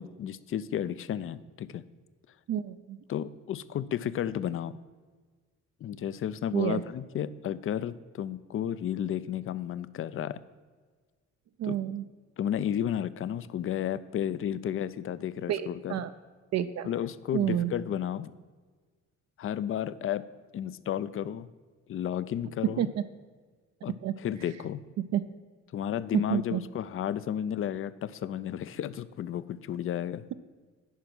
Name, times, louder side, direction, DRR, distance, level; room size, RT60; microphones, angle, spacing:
voice 1, 0.0-1.8 3.1-4.8 5.8-10.4 11.6-11.8 12.4-16.0 16.8-18.3 19.4-20.3 20.5-21.5 21.9-22.9 23.8-24.8 25.7-30.3, left 10 dB, 45° left, 16 dB, 0.4 m, -32 dB
voice 2, 2.5-3.0 6.5-6.8 11.6-12.0 15.5-16.1 16.5-16.9 17.3-17.7 22.8-22.9 24.0-24.1 25.1-25.2 26.3-26.6, right 11 dB, 60° right, 10 dB, 0.5 m, -29 dB
10.0 x 4.7 x 6.1 m, 1.4 s
cardioid pair, 90°, 30 cm